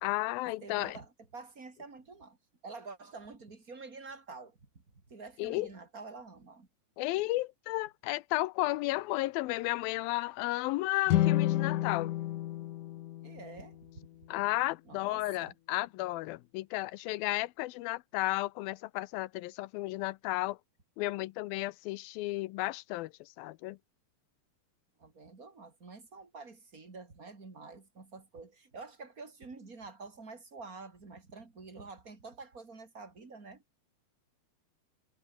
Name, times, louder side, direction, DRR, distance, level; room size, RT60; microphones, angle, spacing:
voice 1, 0.0-1.0 5.4-5.7 7.0-12.1 14.3-20.6 21.0-23.8, left 19 dB, 90° left, 2.5 m, -33 dB
voice 2, 0.6-2.4 2.6-6.7 13.2-13.8 14.9-15.5 25.0-33.6, right 4 dB, 25° right, 3.5 m, -48 dB
sound 1, 11.1-14.3, left 14 dB, 70° left, 2.3 m, -31 dB
omnidirectional pair, 4.2 m